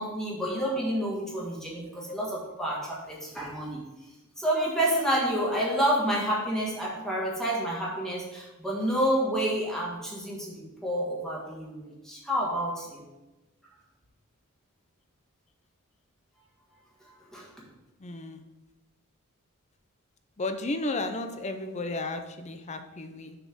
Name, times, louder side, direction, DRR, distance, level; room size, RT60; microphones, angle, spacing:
voice 1, 0.0-3.8 4.4-13.0 17.3-17.5, right 1 dB, ahead, -5 dB, 1.6 m, -29 dB
voice 2, 18.0-18.4 20.4-23.3, left 2 dB, 30° left, 7 dB, 0.5 m, -33 dB
6.5 x 4.3 x 6.0 m, 1.0 s
head